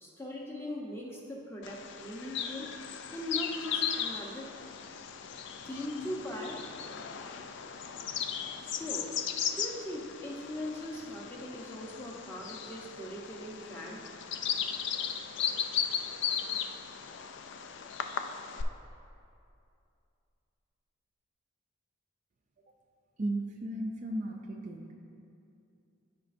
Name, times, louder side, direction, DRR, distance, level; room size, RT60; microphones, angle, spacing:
voice 1, 0.0-4.5 5.6-6.6 8.6-9.1 9.5-14.0, left 1 dB, 10° left, -3 dB, 0.8 m, -40 dB
Bird vocalization bird call bird song, 1.6-18.6, left 7 dB, 55° left, 0.3 m, -37 dB
voice 2, 23.2-24.9, right 1 dB, 35° right, 1 dB, 0.4 m, -35 dB
13.5 x 5.0 x 2.5 m, 2.6 s
head